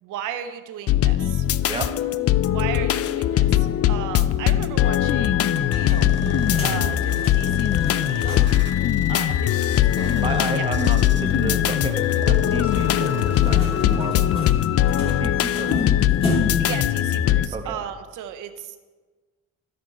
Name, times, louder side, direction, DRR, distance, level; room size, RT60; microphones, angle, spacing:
voice 1, 0.0-1.5 2.5-6.1 6.6-8.4 9.1-10.1 10.5-10.7 16.6-18.8, right 9 dB, 85° right, 8 dB, 0.7 m, -35 dB
sound 1, 0.9-17.5, left 12 dB, 50° left, 0.4 m, -21 dB
sound 2, 5.4-8.7 9.0-9.1 9.4-9.5 12.2-16.8, left 1 dB, 20° left, 2.7 m, -34 dB
sound 3, 6.0-14.0, right 6 dB, 40° right, 0.7 m, -38 dB
voice 2, 10.2-14.5 15.0-15.7 17.5-17.8, right 3 dB, 20° right, 4 dB, 1.1 m, -31 dB
13.0 x 5.1 x 4.4 m, 1.3 s
cardioid pair, 90°, 30 cm